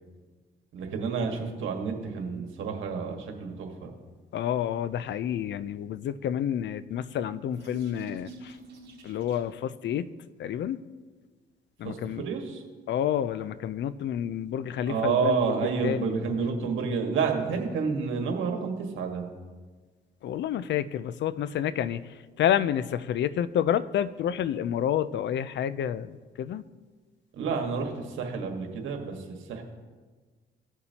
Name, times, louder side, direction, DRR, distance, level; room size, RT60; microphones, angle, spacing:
voice 1, 0.7-3.9 11.8-12.6 14.9-19.2 27.4-29.6, right 5 dB, 80° right, 3 dB, 1.6 m, -29 dB
voice 2, 4.3-8.6 9.0-10.1 10.4-10.8 11.8-12.2 12.9-16.2 20.2-22.0 22.4-26.6, left 10 dB, 65° left, 15 dB, 0.5 m, -29 dB
sound 1, 6.8-9.7, right 2 dB, 60° right, 3.3 m, -46 dB
18.0 x 6.8 x 2.9 m, 1.4 s
cardioid pair, 90°, 20 cm